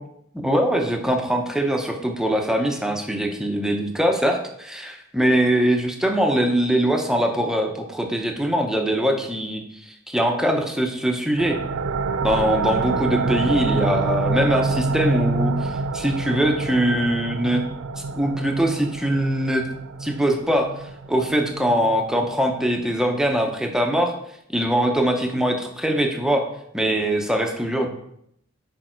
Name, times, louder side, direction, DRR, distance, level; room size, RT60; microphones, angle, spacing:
voice 1, 0.3-11.6 12.2-17.6 18.1-19.6 20.0-20.7 21.1-24.1 24.5-26.4 26.7-27.9, right 1 dB, 5° right, 3 dB, 0.8 m, -22 dB
sound 1, 11.4-22.7, right 3 dB, 70° right, 0.4 m, -27 dB
6.8 x 5.2 x 4.4 m, 0.74 s
head